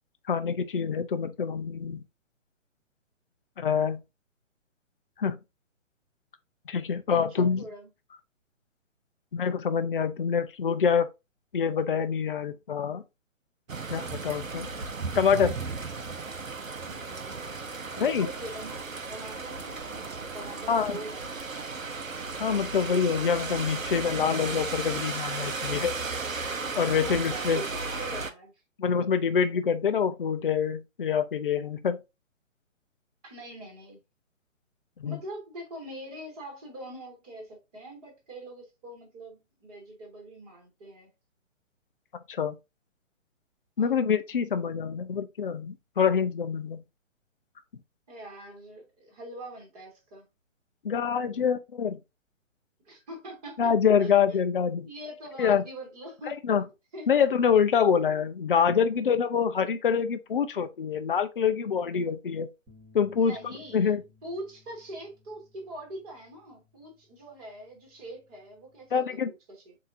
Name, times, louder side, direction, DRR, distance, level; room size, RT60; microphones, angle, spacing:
voice 1, 0.3-2.0 3.6-4.0 5.2-5.4 6.7-7.6 9.3-11.1 11.5-13.0 13.9-14.7 15.2-15.5 18.0-18.3 20.7-21.0 22.4-25.9 26.8-27.6 28.8-32.0 35.0-35.2 42.3-42.6 43.8-46.8 50.8-52.0 53.6-54.9 55.4-55.6 56.5-56.6 57.1-62.5 62.9-63.4 63.7-64.0 68.9-69.3, left 7 dB, 45° left, 0.5 m, -26 dB
voice 2, 7.1-7.9 16.8-17.5 18.0-21.4 27.0-28.5 33.2-34.0 35.0-41.1 43.8-44.0 48.1-50.2 52.8-53.7 54.0-54.4 54.9-56.6 56.9-57.1 63.2-63.9 64.2-69.3 69.6-69.7, right 1 dB, 30° right, 2.3 m, -43 dB
sound 1, 13.7-28.3, right 4 dB, 80° right, 0.8 m, -35 dB
sound 2, 62.7-68.9, left 4 dB, 10° right, 1.2 m, -61 dB
7.1 x 2.8 x 2.6 m
figure-of-eight pair, 135°, 39 cm